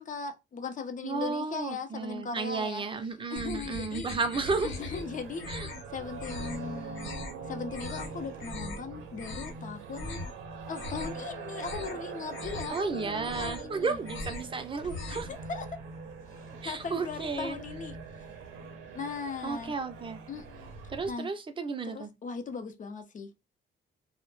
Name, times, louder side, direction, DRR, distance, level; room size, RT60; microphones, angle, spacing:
voice 1, 0.0-2.8 3.3-4.1 4.6-5.5 5.9-7.2 7.4-10.2 10.7-14.0 14.8-15.7 16.5-18.0 18.9-19.7 20.3-20.8 21.1-21.3 21.8-23.5, left 5 dB, 40° left, 0.6 m, -38 dB
voice 2, 1.0-4.7 5.5-5.7 12.7-15.3 16.6-17.6 19.4-20.2 20.9-22.1, right 4 dB, 25° right, 0.5 m, -33 dB
sound 1, 3.4-5.0 5.3-5.8 6.2-6.6 6.9-7.3 7.7-8.1 8.4-8.8 9.1-9.6 9.9-10.3 10.6-11.2 11.5-12.0 12.3-12.8 13.2-13.7 14.0-14.5 14.8-15.4, left 3 dB, 80° left, 0.9 m, -40 dB
sound 2, 4.4-21.1, right 4 dB, 90° right, 0.5 m, -43 dB
2.1 x 2.0 x 3.0 m
cardioid pair, 90°, 20 cm